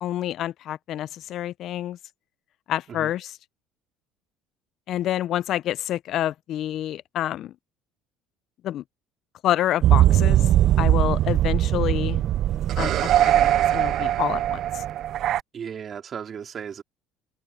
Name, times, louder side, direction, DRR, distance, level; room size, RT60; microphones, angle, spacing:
voice 1, 0.0-2.0 2.7-3.3 4.9-7.5 8.6-8.8 9.4-10.5 10.8-12.2 12.8-14.8, left 12 dB, 55° left, 0.3 m, -28 dB
sound 1, 9.8-15.4, right 12 dB, 50° right, 0.4 m, -20 dB
voice 2, 15.5-16.8, right 7 dB, 35° right, 3.9 m, -35 dB
cardioid pair, 130°, 0 cm